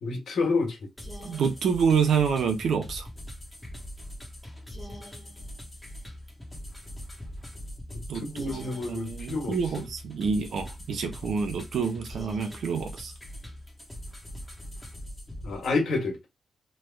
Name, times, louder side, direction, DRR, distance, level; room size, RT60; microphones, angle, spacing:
voice 1, 0.0-0.8 7.9-9.8 15.4-16.2, left 3 dB, 75° left, 1.3 m, -29 dB
sound 1, 1.0-15.8, equal, 10° left, 1.1 m, -42 dB
voice 2, 1.2-3.1 8.1-13.1, right 6 dB, 70° right, 0.8 m, -27 dB
3.2 x 2.3 x 3.3 m
cardioid pair, 110°, 0 cm